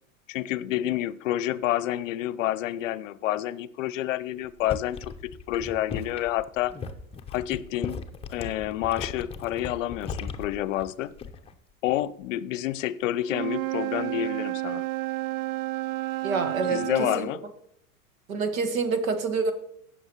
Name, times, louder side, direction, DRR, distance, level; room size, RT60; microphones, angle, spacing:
voice 1, 0.3-6.7 7.3-8.0 8.3-11.1 11.8-14.9 16.7-17.4, left 13 dB, 65° left, 0.6 m, -29 dB
sound 1, 4.4-11.6 11.9-12.3, left 5 dB, 15° left, 0.7 m, -38 dB
Wind instrument woodwind instrument, 13.2-17.2, right 18 dB, 45° right, 0.4 m, -31 dB
voice 2, 16.2-17.3 18.3-19.5, right 4 dB, 70° right, 1.5 m, -27 dB
17.0 x 6.3 x 3.0 m
hypercardioid pair, 95°, 42 cm